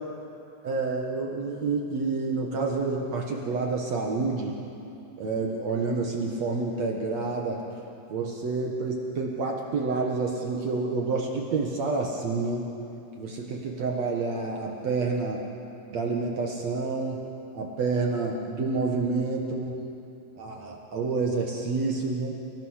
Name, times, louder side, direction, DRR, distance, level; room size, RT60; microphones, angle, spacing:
voice 1, 0.6-4.6 5.2-7.6 8.1-12.7 13.2-15.4 15.9-17.2 17.5-19.7 20.4-22.4, right 3 dB, 65° right, 0 dB, 1.7 m, -28 dB
28.5 x 18.0 x 6.6 m, 2.7 s
omnidirectional pair, 5.4 m